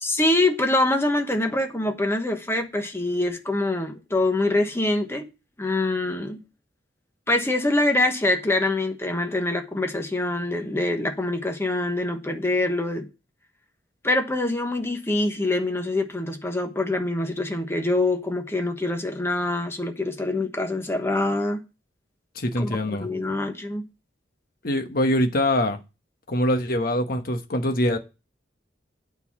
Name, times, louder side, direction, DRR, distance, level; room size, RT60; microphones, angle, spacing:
voice 1, 0.0-5.3 5.6-6.4 7.3-13.1 14.0-21.6 22.6-23.8, left 2 dB, 15° left, 1.1 m, -25 dB
voice 2, 22.3-23.1 24.6-25.8 26.3-28.0, left 1 dB, 55° left, 1.2 m, -23 dB
9.0 x 4.0 x 7.2 m
head